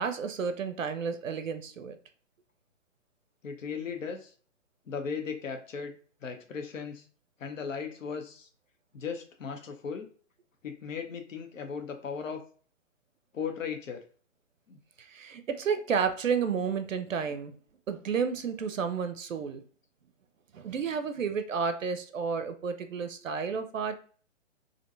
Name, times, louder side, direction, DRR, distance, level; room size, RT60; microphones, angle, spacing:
voice 1, 0.0-2.0 15.0-17.5 17.9-19.6 20.5-24.0, right 6 dB, 80° right, 9 dB, 0.5 m, -31 dB
voice 2, 3.4-4.3 4.9-5.9 6.2-7.0 7.4-8.5 8.9-10.1 10.6-12.4 13.3-14.1 14.7-14.8, left 6 dB, 80° left, 5 dB, 0.6 m, -37 dB
2.5 x 2.2 x 2.5 m, 0.43 s
figure-of-eight pair, 130°, 38 cm